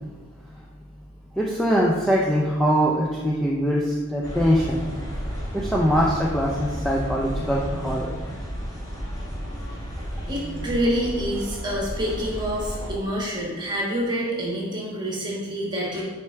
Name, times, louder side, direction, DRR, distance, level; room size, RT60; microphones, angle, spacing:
voice 1, 1.3-4.8 5.5-8.1, equal, ahead, -4 dB, 0.4 m, -22 dB
sound 1, 4.2-12.9, equal, 15° left, 1.4 m, -32 dB
voice 2, 10.3-16.0, equal, 20° right, -3 dB, 1.3 m, -27 dB
6.3 x 3.4 x 4.4 m, 1.4 s
head